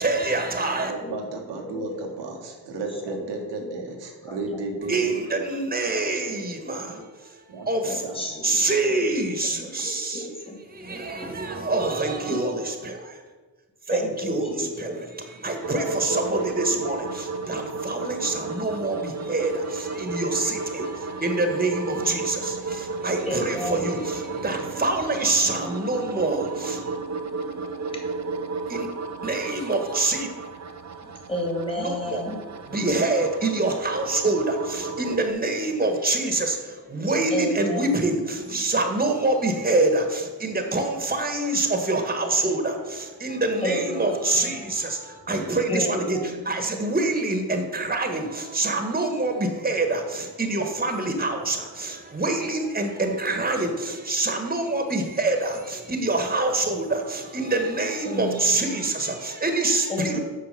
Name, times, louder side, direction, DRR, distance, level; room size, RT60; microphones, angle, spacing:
voice 1, 0.0-0.9 4.8-8.0 8.4-10.3 10.7-13.2 13.9-26.9 28.7-28.9 29.2-30.3 31.8-32.2 32.6-60.2, right 2 dB, 20° right, 5 dB, 1.5 m, -26 dB
voice 2, 0.8-5.1 6.3-6.5 6.9-7.0 7.5-8.3, right 2 dB, 85° right, 2 dB, 1.5 m, -34 dB
voice 3, 1.5-2.1 3.1-3.2 3.6-3.8 4.3-4.6 5.9-6.0 7.9-8.6 8.9-9.1 9.4-10.6 11.2-11.3 12.3-12.4 13.9-15.0 15.7-16.8 19.3-19.4 21.9-22.2 23.3-24.1 27.9-28.0 31.0-32.4 37.3-38.6 43.6-44.7 45.7-46.6 58.0-58.9 59.9-60.2, left 1 dB, 15° left, 1 dB, 2.2 m, -33 dB
sound 1, 15.6-35.3, right 4 dB, 40° right, 0.6 m, -33 dB
6.4 x 4.6 x 6.7 m, 1.3 s
cardioid pair, 55°, 41 cm